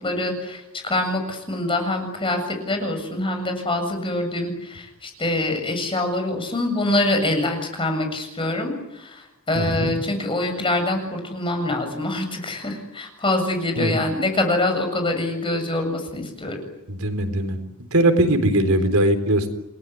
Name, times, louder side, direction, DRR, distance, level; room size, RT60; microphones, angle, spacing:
voice 1, 0.0-16.6, left 2 dB, 25° left, 5 dB, 7.5 m, -25 dB
voice 2, 9.5-9.9 13.8-14.0 16.9-17.6 17.9-19.5, right 1 dB, 80° right, 9 dB, 3.9 m, -20 dB
30.0 x 20.5 x 9.5 m, 0.90 s
head